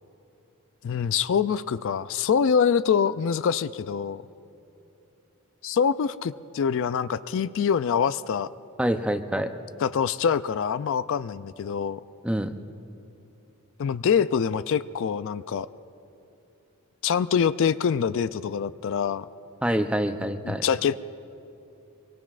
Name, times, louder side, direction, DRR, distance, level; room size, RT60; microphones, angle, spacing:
voice 1, 0.8-4.2 5.6-8.5 9.8-12.0 13.8-15.7 17.0-19.3 20.4-21.0, left 7 dB, 60° left, 14 dB, 0.3 m, -25 dB
voice 2, 8.8-9.5 12.2-12.6 19.6-20.6, right 1 dB, 5° right, 7 dB, 0.6 m, -26 dB
25.0 x 23.5 x 2.5 m, 2.9 s
head